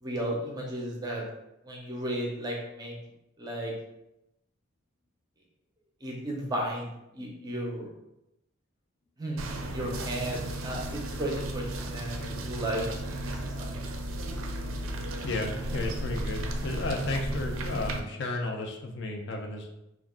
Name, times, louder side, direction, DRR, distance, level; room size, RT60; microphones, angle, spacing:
voice 1, 0.0-1.2 1.6-3.0 3.4-3.7 6.0-6.9 7.1-7.9 9.2-13.7, right 1 dB, 20° right, -1 dB, 0.5 m, -34 dB
sound 1, 9.4-18.0, right 1 dB, 75° right, 0.4 m, -34 dB
voice 2, 15.2-19.7, left 2 dB, 55° left, 2 dB, 0.4 m, -33 dB
2.3 x 2.2 x 3.5 m, 0.88 s
head